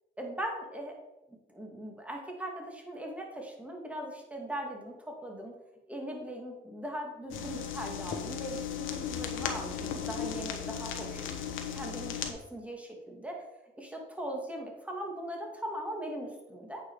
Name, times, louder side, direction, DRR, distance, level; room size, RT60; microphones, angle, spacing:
voice 1, 0.2-1.2 1.5-5.5 5.9-11.3 11.7-13.4 13.8-16.8, right 1 dB, 5° right, 0 dB, 2.2 m, -40 dB
sound 1, 7.3-12.3, left 8 dB, 80° left, 1.2 m, -36 dB
8.8 x 5.5 x 4.8 m, 0.97 s
cardioid pair, 90°, 20 cm